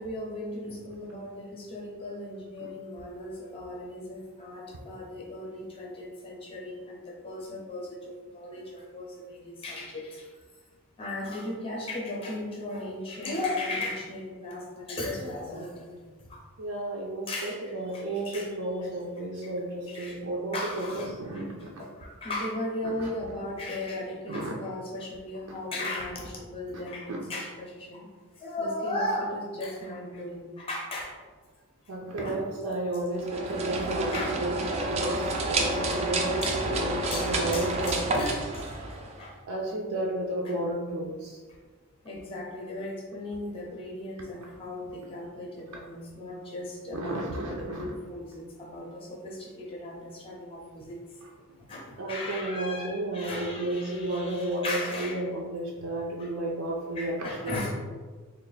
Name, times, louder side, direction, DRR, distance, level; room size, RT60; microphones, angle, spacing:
voice 1, 0.0-10.3 11.0-15.9 16.3-16.4 17.3-18.5 19.4-19.5 19.9-20.2 20.5-28.1 28.4-31.1 32.2-32.4 34.1-34.4 36.4-36.6 37.1-38.7 39.2-39.4 40.4-40.5 42.0-51.0 51.6-55.2 56.2-56.3 56.9-57.7, left 1 dB, 25° left, -2 dB, 0.6 m, -36 dB
voice 2, 16.6-21.7 22.8-23.1 24.3-24.5 25.5-25.6 27.1-27.2 31.9-38.1 39.5-41.4 46.9-47.9 52.0-57.7, right 1 dB, 85° right, -3 dB, 0.5 m, -32 dB
sound 1, 33.2-39.3, right 2 dB, 30° right, 0.3 m, -29 dB
3.3 x 2.4 x 3.8 m, 1.4 s
head